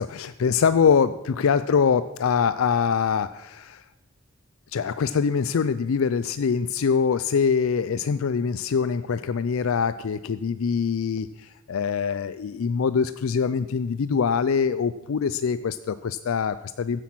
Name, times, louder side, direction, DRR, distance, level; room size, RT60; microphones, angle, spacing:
voice 1, 0.0-3.8 4.7-17.0, left 6 dB, 65° left, 14 dB, 0.4 m, -24 dB
15.5 x 8.3 x 6.1 m, 1.0 s
head